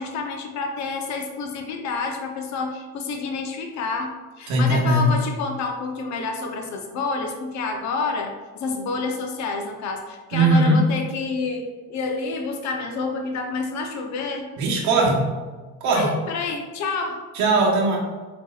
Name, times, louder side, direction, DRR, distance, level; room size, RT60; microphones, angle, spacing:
voice 1, 0.0-14.5 15.9-17.2, left 4 dB, 55° left, 3 dB, 0.8 m, -29 dB
voice 2, 4.5-5.1 10.3-10.8 14.6-15.2 15.8-16.1 17.3-18.0, right 2 dB, 60° right, -2 dB, 1.2 m, -19 dB
4.4 x 4.1 x 2.4 m, 1.3 s
cardioid pair, 125°, 32 cm